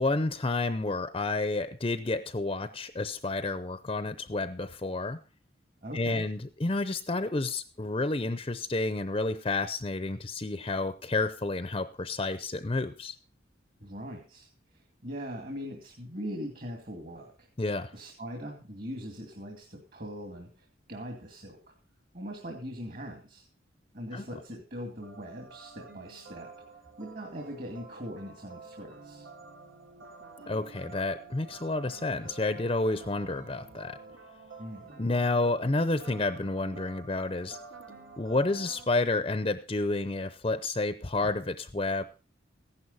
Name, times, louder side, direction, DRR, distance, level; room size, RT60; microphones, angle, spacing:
voice 1, 0.0-5.2 5.9-13.2 17.6-17.9 24.1-24.2 30.5-34.0 35.0-37.6 38.2-42.0, left 2 dB, 30° left, 12 dB, 0.6 m, -30 dB
voice 2, 5.8-6.3 13.8-14.5 14.7-17.5 17.9-21.7 22.1-23.5 23.9-26.5 27.0-29.3 34.6-34.9, equal, 45° right, 3 dB, 2.4 m, -41 dB
sound 1, 25.0-38.9, right 4 dB, 90° right, 2.8 m, -49 dB
15.0 x 11.0 x 4.1 m, 0.35 s
head